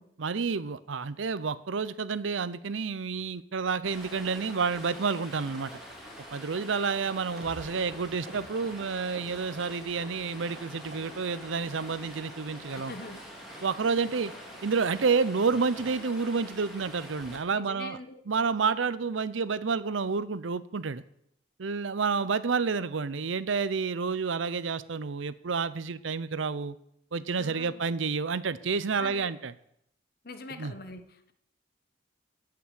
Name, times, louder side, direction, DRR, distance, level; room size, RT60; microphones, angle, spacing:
voice 1, 0.2-5.7 6.3-12.9 13.6-14.3 14.6-18.0 18.3-21.0 21.6-26.7 27.1-29.5 30.6-30.7, right 5 dB, 80° right, 16 dB, 0.6 m, -29 dB
Stream, 3.8-17.4, equal, ahead, 2.7 m, -45 dB
sound 1, 7.4-10.6 10.9-11.5 11.8-12.4 12.7-12.8 13.0-13.3 13.6-13.7 13.9-14.1 14.4-14.5 14.8-15.0 15.3-15.4 15.7-15.9 16.2-16.3 16.6-16.8 17.1-17.2, right 1 dB, 45° right, 1.7 m, -49 dB
voice 2, 12.7-13.2 14.3-14.4 17.5-18.2 27.4-27.9 29.0-29.3 30.2-31.3, left 3 dB, 50° left, 9 dB, 1.2 m, -43 dB
14.0 x 6.0 x 8.2 m, 0.74 s
head